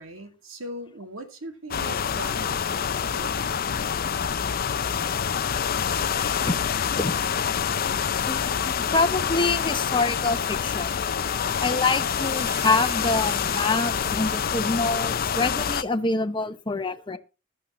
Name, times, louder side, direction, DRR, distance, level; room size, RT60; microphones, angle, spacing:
voice 1, 0.0-3.8, right 1 dB, 85° right, 2.2 m, -40 dB
sound 1, 1.7-15.8, left 7 dB, 45° left, 0.5 m, -26 dB
sound 2, 6.1-14.7, equal, 15° right, 2.4 m, -44 dB
voice 2, 8.3-10.9 11.6-17.2, left 3 dB, 25° left, 0.8 m, -26 dB
15.0 x 11.5 x 3.1 m
head